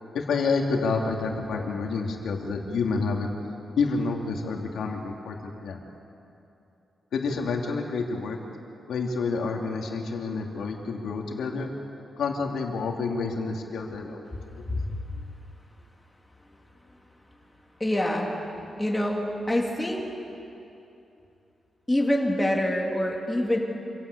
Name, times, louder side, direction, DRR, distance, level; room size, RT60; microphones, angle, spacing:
voice 1, 0.1-3.3 3.8-5.8 7.1-8.4 8.9-11.7 12.2-14.2 14.5-14.6, left 4 dB, 90° left, 1 dB, 2.9 m, -28 dB
voice 2, 17.8-18.3 18.8-20.0 21.9-23.6, left 1 dB, 10° left, 0 dB, 3.2 m, -25 dB
27.0 x 16.5 x 8.5 m, 2.8 s
wide cardioid pair, 140°, 0 cm